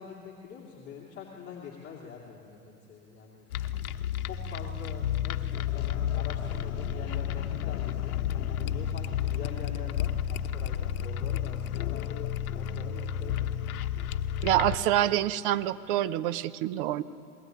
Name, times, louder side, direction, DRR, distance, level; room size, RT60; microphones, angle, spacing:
voice 1, 0.0-3.5 4.1-8.2 8.5-12.3 12.5-13.7, left 6 dB, 25° left, -4 dB, 2.6 m, -45 dB
sound 1, 3.5-14.8, left 9 dB, 70° left, 1.0 m, -31 dB
voice 2, 14.4-17.0, right 12 dB, 40° right, 14 dB, 0.7 m, -26 dB
21.0 x 19.0 x 9.2 m, 2.6 s
hypercardioid pair, 125°, 44 cm